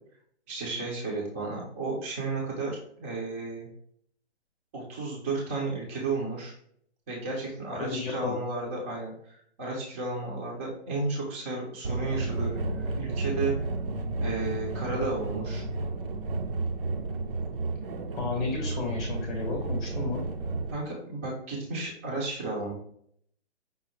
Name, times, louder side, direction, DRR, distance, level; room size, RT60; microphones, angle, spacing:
voice 1, 0.5-2.7 3.0-3.7 4.7-6.5 7.1-13.5 14.2-15.6 20.7-22.7, right 3 dB, 10° right, -3 dB, 0.6 m, -33 dB
voice 2, 7.8-8.4 18.1-20.2, left 4 dB, 15° left, -2 dB, 0.9 m, -33 dB
sound 1, 11.8-20.7, right 3 dB, 55° right, 0.6 m, -32 dB
5.4 x 2.0 x 4.3 m, 0.66 s
hypercardioid pair, 160°, 34 cm